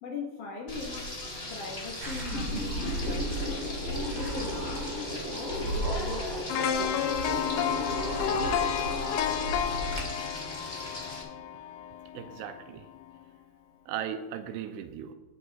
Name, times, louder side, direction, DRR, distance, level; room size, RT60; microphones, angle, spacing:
voice 1, 0.0-1.1 1.5-3.7 4.1-7.3, left 4 dB, 60° left, -1 dB, 2.5 m, -40 dB
Frying (food), 0.7-11.2, left 1 dB, 20° left, 1.9 m, -39 dB
sound 1, 2.0-10.0, equal, 40° right, 1.9 m, -34 dB
sound 2, 6.5-12.5 12.9-13.0, left 9 dB, 80° left, 2.3 m, -31 dB
voice 2, 12.1-12.9 13.9-15.1, right 9 dB, 85° right, 8 dB, 2.6 m, -37 dB
19.5 x 8.4 x 2.4 m, 1.2 s
omnidirectional pair, 4.9 m